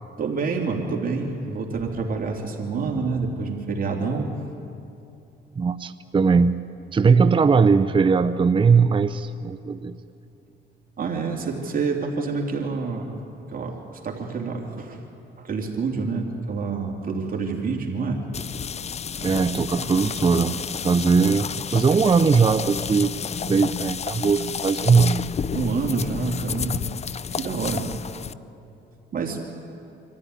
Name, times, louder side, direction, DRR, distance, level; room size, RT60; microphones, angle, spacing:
voice 1, 0.2-4.3 11.0-13.1 13.5-13.8 14.0-15.0 15.4-18.2 25.5-26.9 27.3-27.9 29.1-29.4, right 4 dB, 45° right, 0 dB, 3.1 m, -27 dB
voice 2, 5.6-6.6 6.9-10.0 19.2-23.1 23.5-25.2, right 5 dB, 25° right, 10 dB, 0.7 m, -20 dB
sound 1, 18.3-28.3, left 7 dB, 35° left, 0.5 m, -31 dB
25.5 x 14.5 x 9.9 m, 2.7 s
cardioid pair, 90°, 20 cm